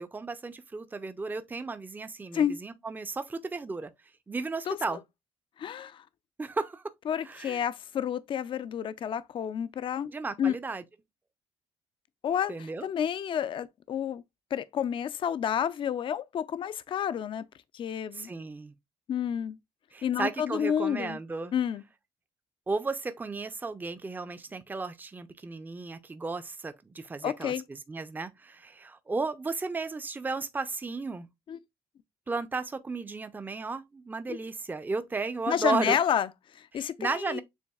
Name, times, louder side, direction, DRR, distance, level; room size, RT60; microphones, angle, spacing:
voice 1, 0.0-3.9 4.3-5.0 6.4-6.8 7.2-7.6 10.1-10.8 12.5-12.9 18.1-18.7 19.9-21.5 22.7-31.3 32.3-36.0 36.7-37.4, right 3 dB, 15° right, 0.5 m, -34 dB
voice 2, 4.7-5.0 5.6-6.0 7.1-10.1 10.4-10.6 12.2-14.2 14.5-17.4 17.7-18.3 19.1-19.6 20.0-21.2 21.5-21.8 27.2-27.6 31.5-31.6 34.3-34.4 35.5-37.4, left 9 dB, 50° left, 0.4 m, -30 dB
7.0 x 2.5 x 2.3 m
cardioid pair, 85°, 11 cm